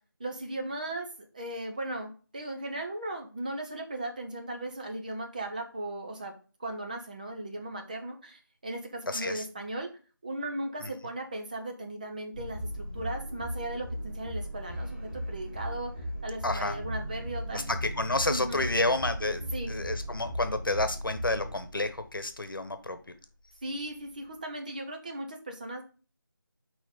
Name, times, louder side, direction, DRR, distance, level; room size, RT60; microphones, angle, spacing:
voice 1, 0.2-6.3 6.6-9.9 10.2-17.6 18.3-18.6 19.5-19.8 23.6-25.8, right 1 dB, 25° right, 3 dB, 0.8 m, -37 dB
voice 2, 9.1-9.4 10.8-10.9 16.4-16.7 17.5-19.4 19.7-23.0, left 2 dB, 75° left, 9 dB, 1.2 m, -30 dB
sound 1, 12.3-22.5, equal, 40° right, 3.2 m, -37 dB
6.4 x 4.8 x 3.7 m, 0.36 s
figure-of-eight pair, 170°, 11 cm